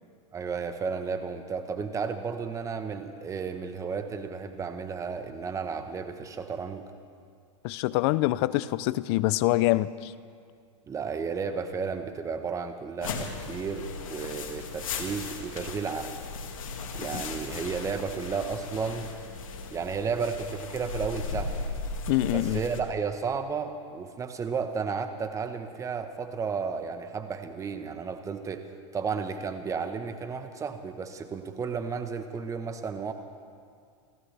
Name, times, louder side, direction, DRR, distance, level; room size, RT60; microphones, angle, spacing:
voice 1, 0.3-6.8 10.9-16.1 17.0-19.1 19.7-21.6 22.3-28.7 28.9-33.1, right 5 dB, 20° right, 8 dB, 1.1 m, -33 dB
voice 2, 7.6-10.1 17.1-17.2 22.1-22.6, left 17 dB, 50° left, 17 dB, 0.5 m, -25 dB
sound 1, 13.0-22.8, left 4 dB, 85° left, 1.8 m, -37 dB
29.0 x 14.5 x 3.4 m, 2.2 s
hypercardioid pair, 125°, 17 cm